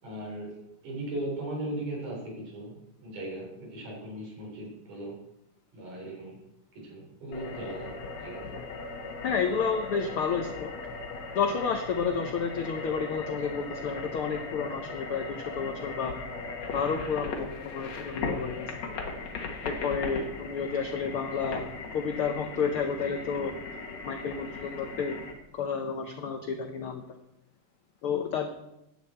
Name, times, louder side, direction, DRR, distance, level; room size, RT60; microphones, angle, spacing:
voice 1, 0.0-5.2 5.7-6.4 6.7-8.5 21.0-21.2, right 1 dB, 70° right, -1 dB, 5.5 m, -38 dB
sound 1, 7.3-25.3, left 3 dB, 60° left, 2.7 m, -38 dB
voice 2, 9.2-10.7 11.3-16.2 16.7-18.7 19.6-23.5 24.0-25.2 25.5-27.2 28.0-28.5, left 6 dB, 85° left, 5 dB, 1.2 m, -31 dB
16.5 x 10.5 x 4.5 m, 0.86 s
omnidirectional pair, 3.7 m